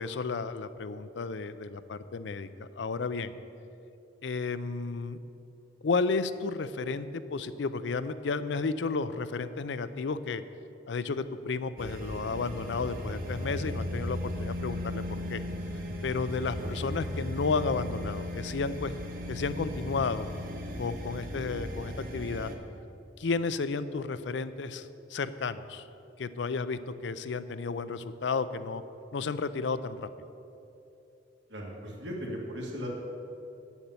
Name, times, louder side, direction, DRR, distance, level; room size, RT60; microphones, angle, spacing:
voice 1, 0.0-3.3 4.2-5.2 5.8-10.4 10.9-15.0 15.3-15.4 16.0-18.9 19.3-20.3 20.8-22.5 23.2-25.9 26.2-28.8 29.1-30.1, left 4 dB, 80° left, 13 dB, 0.5 m, -32 dB
sound 1, 11.8-22.5, left 1 dB, 55° right, 1.2 m, -36 dB
voice 2, 31.5-32.9, equal, 80° right, -2 dB, 2.3 m, -37 dB
9.4 x 7.2 x 8.1 m, 2.8 s
head